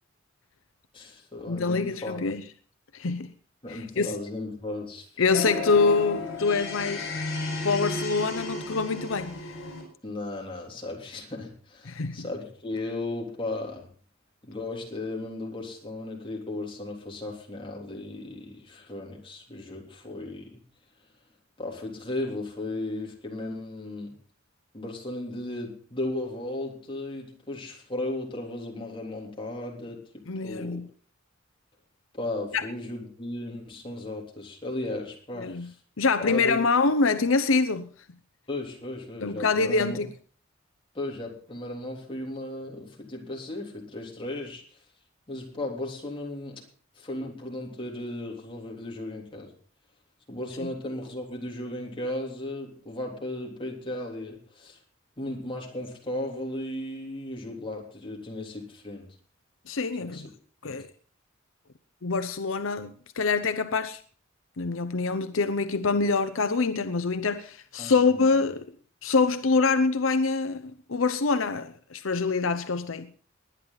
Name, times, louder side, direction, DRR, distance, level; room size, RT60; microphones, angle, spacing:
voice 1, 0.9-2.2 3.6-5.2 10.0-13.9 14.4-20.6 21.6-24.2 24.7-30.8 32.1-35.8 36.2-36.6 38.5-40.1 40.9-44.8 45.3-46.6 47.0-49.5 50.3-54.8 55.2-59.1 60.0-60.2 60.6-60.8 67.8-68.5, left 1 dB, 25° left, 3.4 m, -35 dB
voice 2, 1.5-2.4 2.9-3.3 3.7-4.1 5.2-7.2 7.6-9.4 11.9-12.3 30.3-30.9 32.5-32.6 35.4-35.7 36.0-37.9 39.2-40.1 50.6-50.7 59.7-60.2 60.6-60.9 62.0-64.0 64.6-68.7 69.0-73.1, left 4 dB, 80° left, 0.8 m, -25 dB
sound 1, 5.3-9.8, left 2 dB, 60° left, 6.3 m, -33 dB
20.0 x 10.0 x 4.0 m
head